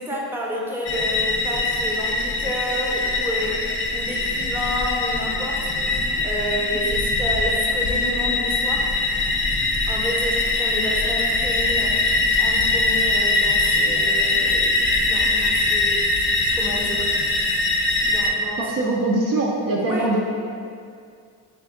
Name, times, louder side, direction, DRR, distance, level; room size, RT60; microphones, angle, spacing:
voice 1, 0.0-8.9 9.9-17.1 18.1-18.9 19.8-20.2, equal, 5° right, -3 dB, 0.7 m, -30 dB
sound 1, 0.9-18.3, left 2 dB, 25° left, 0.5 m, -22 dB
voice 2, 18.6-20.2, right 2 dB, 45° right, -3 dB, 0.5 m, -22 dB
3.4 x 2.6 x 3.6 m, 2.3 s
supercardioid pair, 55°, 48 cm